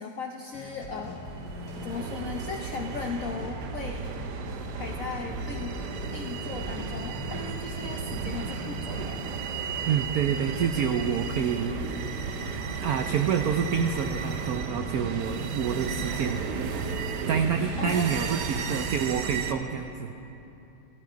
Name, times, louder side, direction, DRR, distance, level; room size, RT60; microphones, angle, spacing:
voice 1, 0.0-1.4 1.8-4.1 4.7-5.8 6.1-9.2 17.8-18.3 18.5-18.8, left 5 dB, 70° left, 2 dB, 0.7 m, -37 dB
sound 1, 0.5-17.1, left 3 dB, 90° left, 2.6 m, -41 dB
sound 2, 1.0-19.5, right 6 dB, 65° right, 1.1 m, -34 dB
voice 2, 9.9-11.7 12.8-16.5 17.3-20.1, right 7 dB, 90° right, 6 dB, 0.8 m, -27 dB
15.0 x 12.0 x 5.1 m, 2.9 s
omnidirectional pair, 2.2 m